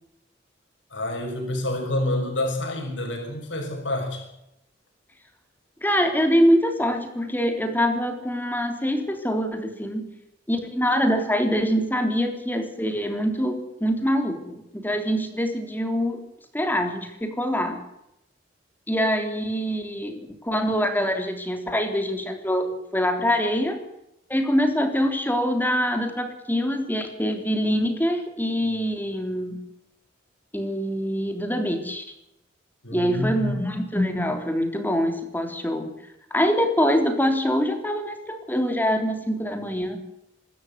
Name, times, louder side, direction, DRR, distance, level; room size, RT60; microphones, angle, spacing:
voice 1, 0.9-4.2 32.8-33.5, left 1 dB, 75° left, 3 dB, 6.3 m, -28 dB
voice 2, 5.8-10.1 10.5-16.2 16.5-17.8 18.9-23.8 24.3-29.6 30.5-32.0 32.9-35.9 36.3-40.0, equal, 10° left, 6 dB, 3.5 m, -24 dB
25.0 x 13.5 x 8.2 m, 0.85 s
head